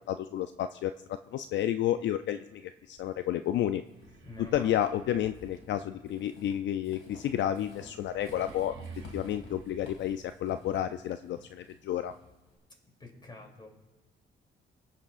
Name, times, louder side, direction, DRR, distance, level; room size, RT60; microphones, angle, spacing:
voice 1, 0.1-3.8 4.4-8.7 9.1-12.1, left 11 dB, 65° left, 10 dB, 0.4 m, -31 dB
Walk footsteps / Squeak, 3.0-12.6, left 3 dB, 85° left, 2.2 m, -54 dB
sound 1, 3.9-10.8, right 4 dB, 75° right, 2.1 m, -51 dB
voice 2, 4.2-4.8 12.7-13.7, left 2 dB, 20° left, 1 dB, 3.0 m, -48 dB
21.5 x 8.7 x 2.5 m, 1.2 s
cardioid pair, 90°, 20 cm